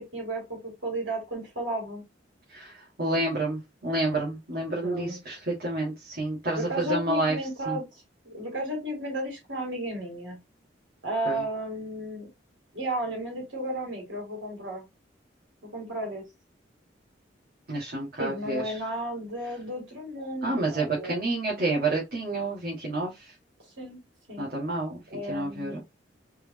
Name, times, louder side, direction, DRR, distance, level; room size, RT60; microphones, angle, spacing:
voice 1, 0.0-2.0 4.8-5.2 6.5-7.8 8.2-10.4 11.0-12.3 12.7-14.9 15.7-16.2 18.2-21.2 23.8-24.0 24.3-24.4 25.1-25.8, right 1 dB, 80° right, 2.9 m, -33 dB
voice 2, 2.5-7.4 7.7-7.8 11.3-11.4 17.7-18.7 20.4-23.3 24.4-25.8, right 2 dB, 55° right, 1.8 m, -29 dB
4.5 x 3.4 x 3.1 m
head